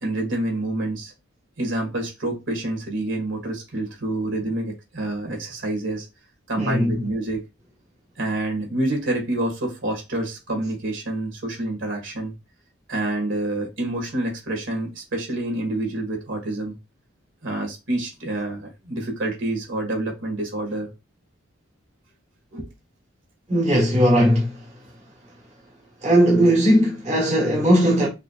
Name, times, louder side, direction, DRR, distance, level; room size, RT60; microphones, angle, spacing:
voice 1, 0.0-1.1 1.6-6.1 6.5-7.4 8.2-12.3 12.9-16.7 17.4-20.9 22.5-22.7, right 1 dB, 70° right, 1.9 m, -27 dB
voice 2, 6.6-7.0 23.5-24.7 26.0-28.1, equal, 35° right, 1.5 m, -18 dB
5.8 x 3.1 x 2.4 m
head